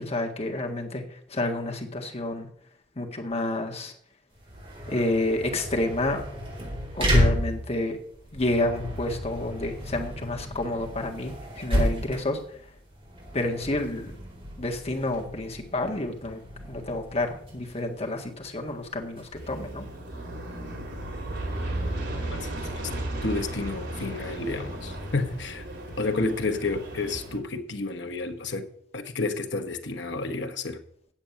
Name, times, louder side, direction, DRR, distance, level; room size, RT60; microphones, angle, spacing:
voice 1, 0.0-2.5 3.0-3.9 4.9-6.2 6.9-8.0 8.3-12.6 13.3-14.1 14.6-16.4 16.7-19.9, left 2 dB, 35° left, 1.8 m, -29 dB
sound 1, 4.3-19.7, equal, 30° right, 4.4 m, -32 dB
Aircraft, 19.4-27.4, right 1 dB, 70° right, 4.0 m, -35 dB
voice 2, 23.2-25.7 26.0-28.7 28.9-30.8, left 3 dB, 70° left, 1.2 m, -30 dB
8.9 x 7.6 x 8.8 m
head